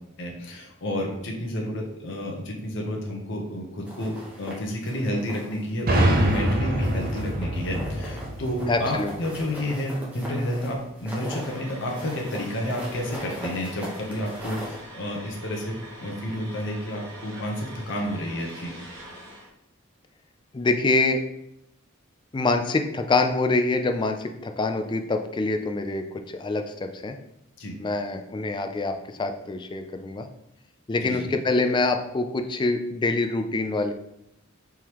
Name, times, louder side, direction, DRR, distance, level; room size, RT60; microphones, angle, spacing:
voice 1, 0.2-18.7 27.6-27.8 31.0-31.3, left 1 dB, 60° left, -1 dB, 0.9 m, -30 dB
sound 1, 3.9-5.6 5.9-6.5 6.8-14.8, equal, 5° right, 1.0 m, -40 dB
sound 2, 5.9-9.5, right 1 dB, 45° right, 0.6 m, -25 dB
voice 2, 8.7-9.1 20.5-21.2 22.3-27.2 27.8-30.3 30.9-33.9, left 3 dB, 20° left, 6 dB, 0.3 m, -25 dB
sound 3, 11.3-19.5, right 1 dB, 65° right, 1.4 m, -43 dB
4.7 x 3.6 x 3.0 m, 0.83 s
head